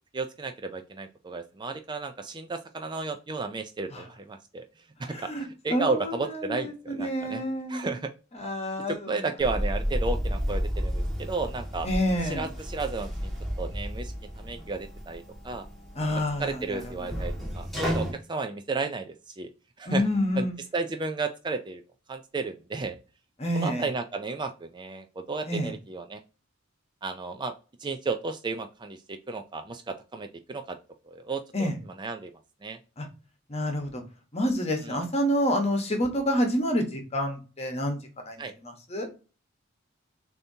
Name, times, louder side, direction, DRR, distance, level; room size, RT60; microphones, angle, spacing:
voice 1, 0.1-4.7 5.0-7.4 7.7-8.1 9.1-11.9 12.2-13.3 13.6-15.7 16.4-19.5 19.8-20.0 20.4-20.5 20.7-21.8 22.1-23.0 23.5-26.2 27.0-27.5 27.8-30.8 31.1-31.7 32.0-32.3 32.6-32.8 34.8-35.0 38.4-38.5, right 3 dB, 25° right, 7 dB, 0.4 m, -33 dB
voice 2, 5.1-7.9 8.3-9.2 11.8-12.5 15.9-17.3 19.9-20.6 23.4-23.9 25.5-25.7 31.5-31.8 33.0-33.1 33.5-34.0 34.3-38.0 38.3-39.1, equal, 30° left, 4 dB, 1.2 m, -28 dB
sound 1, 9.4-18.1, equal, ahead, 1.8 m, -32 dB
6.8 x 2.8 x 2.7 m, 0.33 s
head